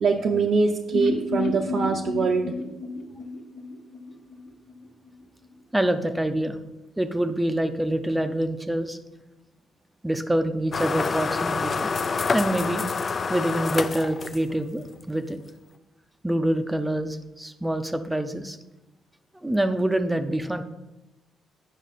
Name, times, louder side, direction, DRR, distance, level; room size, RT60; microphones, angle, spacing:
voice 1, 0.0-2.5, right 4 dB, 60° right, -1 dB, 0.7 m, -23 dB
sound 1, 0.9-4.8 5.1-5.2 5.4-5.5, left 3 dB, 65° left, 1.3 m, -31 dB
voice 2, 5.7-6.6 7.0-9.0 10.0-11.9 12.3-12.8 13.3-15.4 16.2-18.6 19.4-20.6, right 1 dB, 10° right, 8 dB, 0.6 m, -26 dB
sound 2, 10.7-14.7, left 4 dB, 40° left, 0.4 m, -27 dB
8.2 x 5.4 x 4.0 m, 1.0 s
cardioid pair, 90°, 0 cm